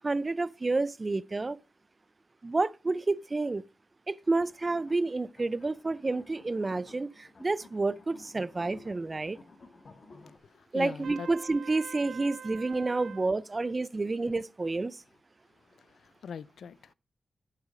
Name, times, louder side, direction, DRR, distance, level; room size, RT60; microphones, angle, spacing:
voice 1, 0.0-1.6 2.4-3.6 4.1-9.4 10.7-15.0, right 3 dB, 25° right, 0.4 m, -30 dB
sound 1, 4.2-10.4, left 3 dB, 45° left, 1.4 m, -54 dB
voice 2, 10.1-11.3 15.7-16.9, left 6 dB, 85° left, 0.4 m, -43 dB
Trumpet, 11.0-13.3, right 7 dB, 80° right, 0.5 m, -45 dB
8.3 x 8.1 x 4.9 m
wide cardioid pair, 125°, 0 cm